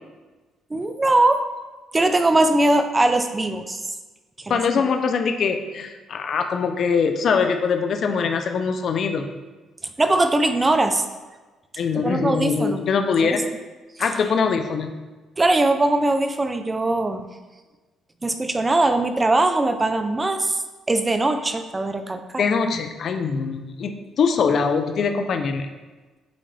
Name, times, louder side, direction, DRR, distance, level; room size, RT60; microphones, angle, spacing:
voice 1, 0.7-1.4 1.9-3.8 4.4-4.6 10.0-11.0 11.9-12.8 13.2-13.4 15.4-17.3 18.2-20.6 20.9-22.4, right 2 dB, 20° right, 8 dB, 0.5 m, -21 dB
voice 2, 4.5-9.3 11.8-13.4 14.0-14.9 22.4-25.7, left 5 dB, 55° left, 6 dB, 0.5 m, -22 dB
7.9 x 3.7 x 3.3 m, 1.2 s
cardioid pair, 90°, 0 cm